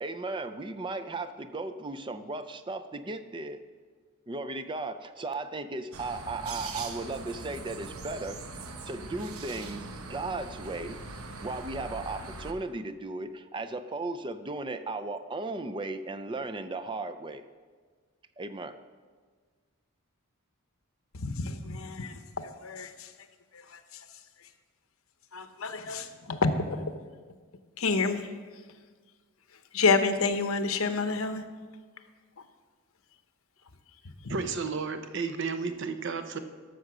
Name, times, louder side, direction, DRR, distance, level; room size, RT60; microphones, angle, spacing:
voice 1, 0.0-3.6 4.3-8.4 8.9-11.0 11.4-17.4 18.4-18.7, right 2 dB, 20° right, 9 dB, 0.4 m, -36 dB
sound 1, 5.9-12.5, right 3 dB, 80° right, 1.0 m, -41 dB
voice 2, 21.2-22.9 25.3-26.9 27.8-28.2 29.7-31.4, left 4 dB, 70° left, 9 dB, 0.8 m, -28 dB
voice 3, 34.3-36.4, right 4 dB, 55° right, 8 dB, 0.8 m, -32 dB
13.0 x 6.6 x 6.1 m, 1.5 s
head